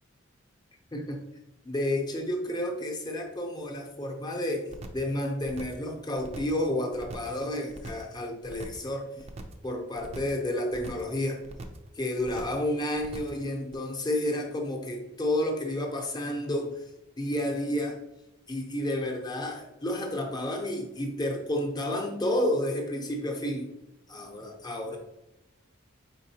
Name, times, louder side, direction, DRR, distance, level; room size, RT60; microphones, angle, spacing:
voice 1, 1.6-4.7 4.9-9.3 9.6-11.4 11.9-16.9 17.2-18.0 18.5-23.7 24.1-25.0, left 1 dB, 20° left, 2 dB, 0.6 m, -31 dB
sound 1, 4.7-5.1 5.4-5.9 6.2-6.6 6.9-7.4 7.7-8.1 8.4-8.9 9.2-9.7 10.0-10.4 10.7-11.1 11.4-11.9 12.2-12.6 12.9-13.4 13.7-13.8, right 2 dB, 30° right, 0.4 m, -42 dB
4.2 x 3.8 x 2.8 m, 0.96 s
head